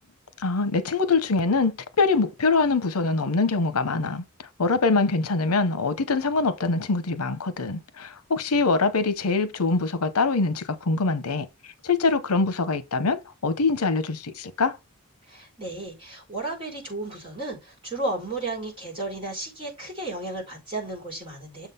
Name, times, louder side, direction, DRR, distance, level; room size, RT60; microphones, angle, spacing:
voice 1, 0.4-4.2 4.6-11.5 11.8-14.8, left 3 dB, 80° left, 0.8 m, -24 dB
voice 2, 15.3-21.7, right 2 dB, 25° right, 4.4 m, -33 dB
7.2 x 3.8 x 5.5 m
head